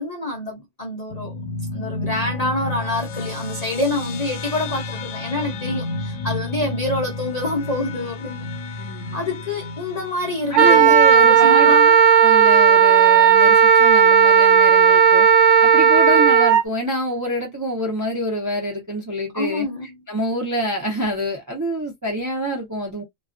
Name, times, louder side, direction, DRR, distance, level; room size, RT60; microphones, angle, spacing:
voice 1, 0.0-1.4 1.7-11.0 11.3-12.0 19.3-20.0, left 2 dB, 45° left, 0.5 m, -27 dB
sound 1, 1.1-11.9, left 2 dB, 80° left, 1.0 m, -31 dB
voice 2, 8.8-9.2 10.5-11.7 12.2-15.3 15.6-23.0, equal, 30° right, 0.3 m, -26 dB
Wind instrument woodwind instrument, 10.5-16.6, right 7 dB, 65° right, 0.9 m, -13 dB
2.3 x 2.2 x 2.4 m
omnidirectional pair, 1.4 m